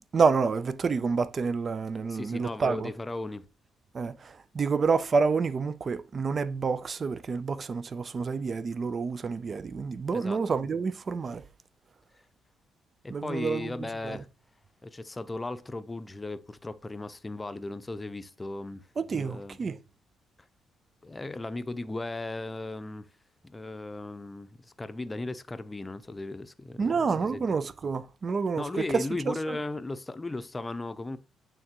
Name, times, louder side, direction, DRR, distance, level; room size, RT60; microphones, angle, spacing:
voice 1, 0.1-2.9 3.9-11.4 13.1-13.7 14.0-14.2 19.0-19.8 26.8-29.6, right 5 dB, 40° right, 0.4 m, -28 dB
voice 2, 2.1-3.4 10.1-10.4 13.0-14.3 14.8-18.9 19.1-19.6 21.0-23.1 23.5-27.4 28.6-31.2, left 2 dB, 20° left, 0.6 m, -36 dB
8.8 x 3.7 x 2.9 m
cardioid pair, 85°, 0 cm